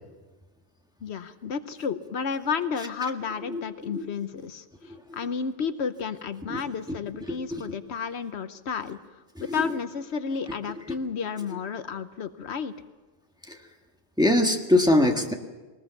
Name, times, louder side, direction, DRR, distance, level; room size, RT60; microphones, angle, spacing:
voice 1, 1.0-9.0 9.4-12.7, left 6 dB, 75° left, 11 dB, 1.1 m, -32 dB
voice 2, 3.5-4.1 6.5-6.6 7.3-7.6 13.5-13.6 14.2-15.3, left 1 dB, 5° right, 2 dB, 1.6 m, -23 dB
21.5 x 19.5 x 7.1 m, 1.3 s
omnidirectional pair, 1.1 m